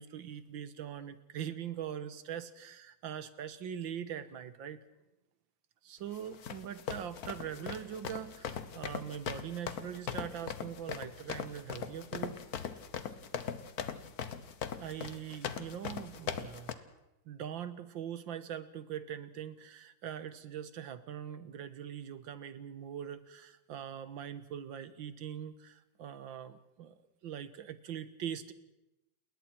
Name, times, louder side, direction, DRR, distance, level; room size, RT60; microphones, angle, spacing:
voice 1, 0.0-4.8 5.8-12.4 14.8-16.8 17.3-27.0 27.2-28.5, right 9 dB, 85° right, 13 dB, 1.9 m, -42 dB
sound 1, 6.1-16.7, left 7 dB, 55° left, 1.5 m, -40 dB
29.5 x 21.0 x 4.5 m, 0.93 s
omnidirectional pair, 2.0 m